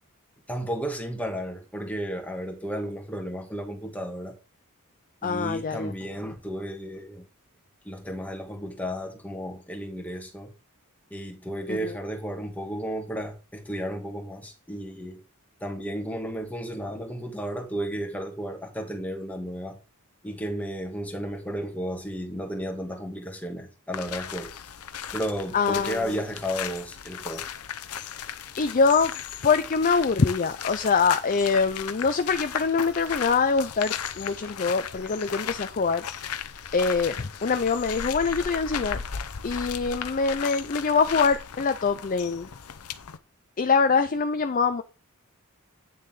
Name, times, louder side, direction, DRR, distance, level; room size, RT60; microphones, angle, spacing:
voice 1, 0.5-4.4 5.2-7.3 7.9-10.5 11.1-15.2 15.6-19.8 20.2-24.5 25.1-27.4, equal, 5° left, 1.7 m, -33 dB
voice 2, 5.2-5.9 11.7-11.9 25.5-26.1 28.6-29.1 29.4-36.0 36.7-39.0 39.4-42.5 43.6-44.8, left 5 dB, 40° left, 0.5 m, -24 dB
sound 1, 23.9-43.2, left 8 dB, 85° left, 0.8 m, -36 dB
9.4 x 6.7 x 3.8 m
head